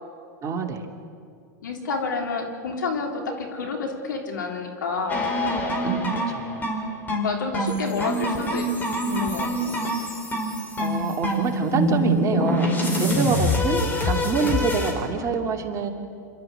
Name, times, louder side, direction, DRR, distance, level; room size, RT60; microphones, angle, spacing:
voice 1, 0.4-0.8 5.8-6.6 10.8-15.9, right 5 dB, 30° right, 2 dB, 2.7 m, -26 dB
voice 2, 1.6-5.2 7.1-8.7 9.0-9.8 13.1-13.4, left 4 dB, 80° left, 2 dB, 3.5 m, -29 dB
sound 1, 5.1-14.9, equal, 20° left, 5.0 m, -25 dB
28.0 x 12.5 x 7.9 m, 2.4 s
hypercardioid pair, 100°, 10 cm